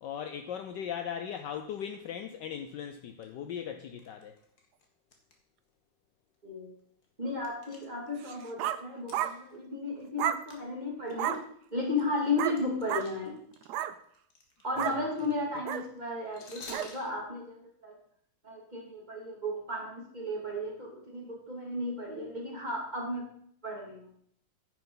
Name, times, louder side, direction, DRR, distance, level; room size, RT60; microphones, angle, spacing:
voice 1, 0.0-4.3 14.8-15.6, left 8 dB, 70° left, 7 dB, 1.1 m, -39 dB
sound 1, 1.3-1.4 1.8-2.1 2.5-2.6 3.1-3.3 4.0-5.3 5.6-5.7 6.3-6.4 6.8-8.4 9.0-10.2 10.5-10.6 11.0-13.7 13.9-17.1, left 3 dB, 50° left, 1.9 m, -51 dB
voice 2, 7.2-11.4 11.7-13.4 14.6-17.9 18.4-23.3 23.6-24.1, left 2 dB, 20° right, -2 dB, 2.3 m, -34 dB
sound 2, 8.2-8.8 9.1-9.4 10.2-10.4 11.2-11.4 12.4-12.6 12.9-13.1 13.6-13.9 14.8-15.0 15.6-15.8 16.7-16.9, right 11 dB, 75° right, 0.9 m, -31 dB
10.0 x 6.1 x 5.4 m, 0.65 s
omnidirectional pair, 2.3 m